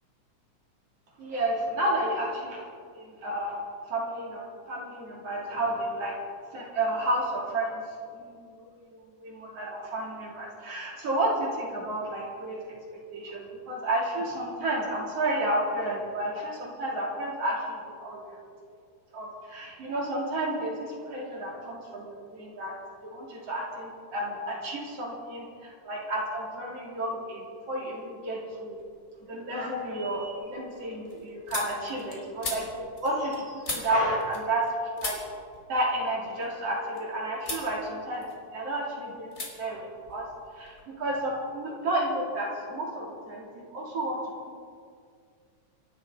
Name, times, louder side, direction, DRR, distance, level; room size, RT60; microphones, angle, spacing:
voice 1, 1.2-2.6 2.9-3.6 3.9-6.2 6.5-7.8 8.1-12.8 13.1-18.3 19.1-22.7 23.0-28.8 29.3-34.6 35.0-35.2 35.7-38.3 38.5-40.3 40.6-44.2 44.5-44.6, right 1 dB, 50° right, -3 dB, 4.1 m, -31 dB
sound 1, 28.7-29.3 29.7-34.7 35.0-37.0 37.4-37.7 38.1-38.8 39.3-39.5 39.8-40.8, left 2 dB, 25° left, 2.7 m, -39 dB
26.5 x 12.5 x 4.0 m, 2.1 s
omnidirectional pair, 3.6 m